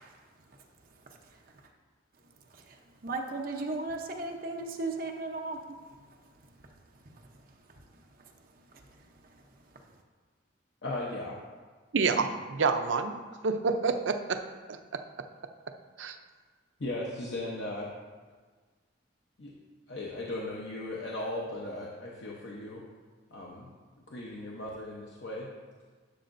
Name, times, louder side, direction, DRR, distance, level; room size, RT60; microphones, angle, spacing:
voice 1, 3.0-5.6, right 2 dB, 50° right, 2 dB, 0.8 m, -35 dB
voice 2, 10.8-11.4 16.8-17.9 19.4-19.5 19.9-22.8 23.3-23.7 24.1-25.5, left 1 dB, 65° left, -4 dB, 0.8 m, -37 dB
voice 3, 11.9-13.2 13.4-14.4 16.0-16.2, right 4 dB, 75° right, 7 dB, 0.5 m, -27 dB
11.5 x 6.4 x 2.6 m, 1.5 s
head